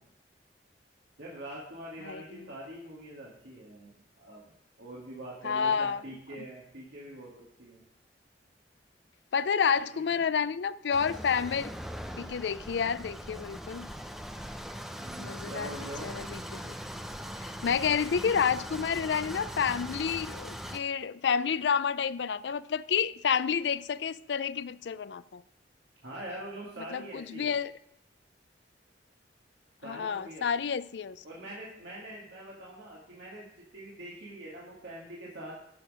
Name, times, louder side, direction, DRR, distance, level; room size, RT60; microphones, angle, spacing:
voice 1, 1.2-4.4 4.8-7.3 7.6-7.8 9.9-10.2 14.9-16.2 26.0-27.5 29.8-30.4 31.2-35.5, right 1 dB, 80° right, 2.2 m, -44 dB
voice 2, 2.1-2.5 5.4-6.0 6.4-6.5 9.3-11.7 12.2-13.9 15.2-15.7 16.0-16.7 17.4-25.4 26.9-27.7 29.8-31.2, left 6 dB, 70° left, 0.4 m, -29 dB
sound 1, 10.9-20.8, equal, ahead, 0.5 m, -40 dB
12.0 x 6.2 x 5.0 m
head